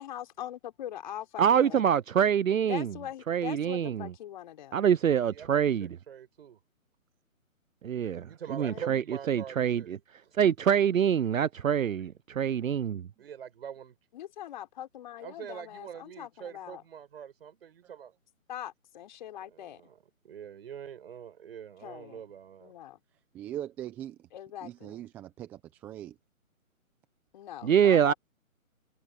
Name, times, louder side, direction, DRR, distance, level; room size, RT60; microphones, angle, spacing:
voice 1, 0.0-1.8 2.7-4.8 8.6-8.9 14.1-16.8 18.5-19.8 21.8-22.2 22.6-23.0 24.3-25.0 27.3-28.1, left 11 dB, 35° left, 4.0 m, -42 dB
voice 2, 1.4-2.9 3.3-4.1 4.7-6.0 7.8-10.0 10.4-12.9 27.6-28.1, right 8 dB, 70° right, 0.6 m, -25 dB
voice 3, 5.3-6.6 8.2-9.9 10.2-10.3 13.2-13.9 15.2-18.1 19.5-20.0 20.2-22.7, right 8 dB, 45° right, 6.8 m, -44 dB
voice 4, 23.3-24.2 24.6-26.1, right 12 dB, 5° right, 0.8 m, -40 dB
figure-of-eight pair, 150°, 42 cm